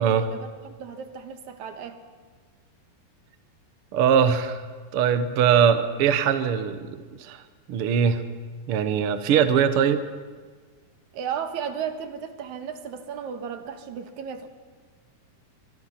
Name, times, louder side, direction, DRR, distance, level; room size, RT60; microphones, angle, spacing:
voice 1, 0.0-2.0 11.1-14.5, right 7 dB, 60° right, 7 dB, 2.5 m, -34 dB
voice 2, 3.9-4.6 4.9-7.4 7.7-8.2 8.7-10.0, right 8 dB, 90° right, 9 dB, 1.2 m, -21 dB
24.5 x 24.0 x 5.9 m, 1.5 s
omnidirectional pair, 4.3 m